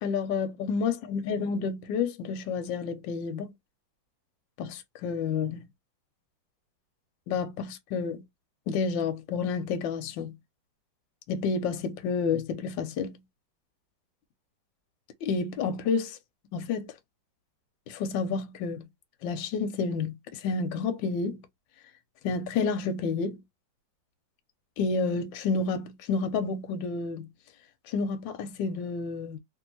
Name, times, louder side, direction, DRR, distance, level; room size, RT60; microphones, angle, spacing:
voice 1, 0.0-3.5 4.6-5.7 7.3-8.2 8.7-10.3 11.3-13.2 15.2-16.2 16.5-16.9 17.9-18.8 19.2-21.4 22.2-23.4 24.8-27.3 27.9-29.4, left 5 dB, 75° left, 1.3 m, -30 dB
3.1 x 2.6 x 2.7 m
omnidirectional pair, 2.2 m